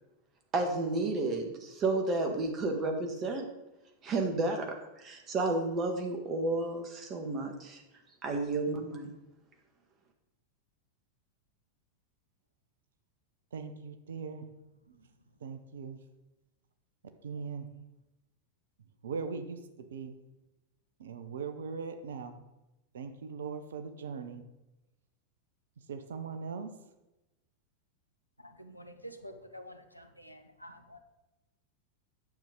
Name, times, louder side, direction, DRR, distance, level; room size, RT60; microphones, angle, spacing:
voice 1, 0.5-3.5 4.0-4.7 5.0-7.8 8.2-9.2, right 2 dB, 30° right, 3 dB, 1.6 m, -31 dB
voice 2, 13.5-14.5 14.9-15.1 15.4-16.0 17.2-17.7 19.0-20.1 21.0-22.4 22.9-24.4 25.9-26.7, right 5 dB, 65° right, 8 dB, 0.8 m, -40 dB
voice 3, 28.4-31.0, equal, 90° left, 6 dB, 0.8 m, -49 dB
9.0 x 7.0 x 3.8 m, 0.98 s
figure-of-eight pair, 90°, 0 cm